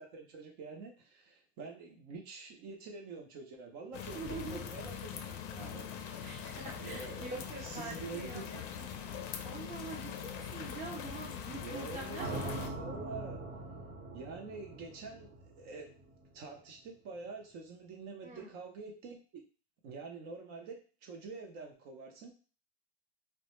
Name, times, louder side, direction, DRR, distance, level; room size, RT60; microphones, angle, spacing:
voice 1, 0.0-6.4 6.8-7.3 7.6-8.7 9.2-9.3 11.6-13.4 14.1-15.9 16.3-19.4 19.8-22.3, right 4 dB, 55° right, 2 dB, 0.7 m, -47 dB
voice 2, 3.8-4.6 6.2-8.9 9.4-12.5 18.2-18.5, right 4 dB, 25° right, -1 dB, 0.7 m, -45 dB
sound 1, 3.9-12.7, left 8 dB, 50° left, 0.5 m, -42 dB
sound 2, 12.2-16.3, right 2 dB, 75° right, 0.9 m, -42 dB
2.1 x 2.1 x 2.9 m, 0.36 s
supercardioid pair, 120°, 32 cm